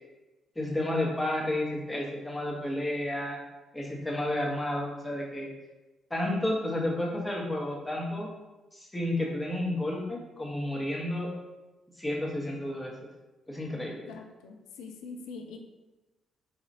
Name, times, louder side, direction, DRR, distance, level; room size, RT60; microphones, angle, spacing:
voice 1, 0.5-3.4 3.7-5.5 6.1-8.3 8.7-11.3 12.0-12.9 13.5-14.1, left 1 dB, 15° left, -3 dB, 1.1 m, -31 dB
voice 2, 14.1-15.6, left 4 dB, 65° left, 3 dB, 0.3 m, -43 dB
4.0 x 2.8 x 2.6 m, 1.1 s
figure-of-eight pair, 40°, 0 cm